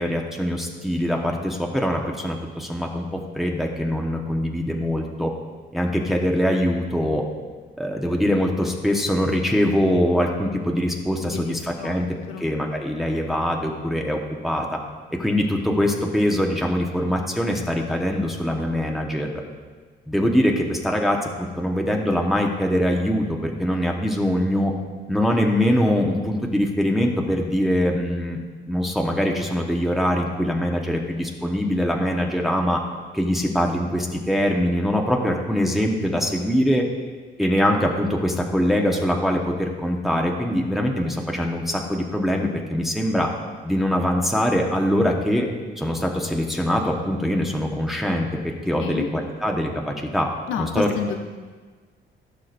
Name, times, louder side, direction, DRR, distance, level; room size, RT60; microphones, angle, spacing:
voice 1, 0.0-3.1 3.3-5.3 5.7-7.3 7.8-12.1 12.4-14.8 15.2-19.3 20.1-24.7 25.1-28.4 28.7-32.8 33.1-36.8 37.4-43.3 43.6-45.5 45.8-50.3 50.6-50.9, equal, ahead, 0 dB, 1.0 m, -23 dB
voice 2, 11.2-11.6 11.8-12.5 48.8-49.1 50.5-51.2, left 8 dB, 90° left, 5 dB, 0.7 m, -30 dB
16.0 x 6.4 x 2.5 m, 1.4 s
cardioid pair, 90°, 20 cm